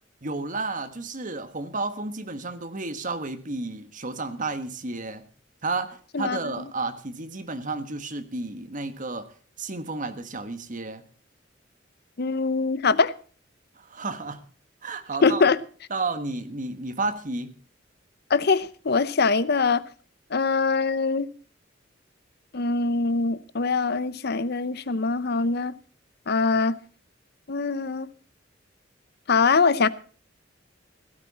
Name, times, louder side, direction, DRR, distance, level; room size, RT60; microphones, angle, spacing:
voice 1, 0.2-5.2 5.6-9.3 9.6-11.0 13.8-14.4 14.8-15.4 15.9-17.5, right 3 dB, 45° right, 1.5 m, -32 dB
voice 2, 12.2-13.1 15.2-15.6 18.3-19.8 20.3-21.3 22.5-25.7 26.3-26.7 27.5-28.1 29.3-29.9, left 4 dB, 60° left, 0.8 m, -23 dB
17.0 x 12.5 x 4.2 m
head